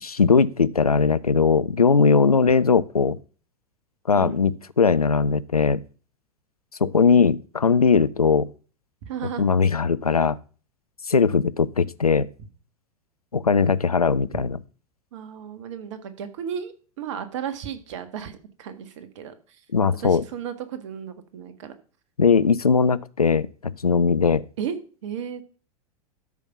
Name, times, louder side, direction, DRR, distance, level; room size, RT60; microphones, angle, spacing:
voice 1, 0.0-3.2 4.1-5.8 6.8-8.5 9.4-10.4 11.1-12.3 13.3-14.6 19.7-20.2 22.2-24.4, left 5 dB, 85° left, 16 dB, 0.5 m, -19 dB
voice 2, 9.0-9.5 14.3-14.4 15.1-19.6 20.0-21.7 24.6-24.8 25.0-25.4, right 8 dB, 55° right, 10 dB, 1.6 m, -34 dB
13.0 x 5.3 x 5.9 m, 0.39 s
figure-of-eight pair, 90°, 19 cm